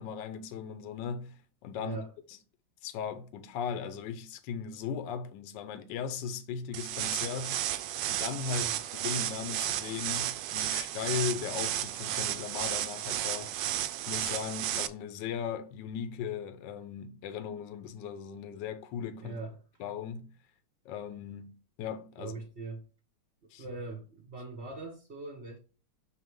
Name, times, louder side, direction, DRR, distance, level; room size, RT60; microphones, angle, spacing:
voice 1, 0.0-2.0 2.3-2.4 2.8-7.6 8.1-8.7 9.0-13.5 14.1-19.4 19.8-20.3 20.8-22.3 23.5-23.6, left 7 dB, 70° left, 1.2 m, -37 dB
sound 1, 6.7-14.9, right 12 dB, 75° right, 1.0 m, -33 dB
voice 2, 19.2-19.5 22.2-22.8 23.6-25.6, right 3 dB, 35° right, 1.5 m, -41 dB
6.0 x 4.7 x 3.7 m
omnidirectional pair, 2.4 m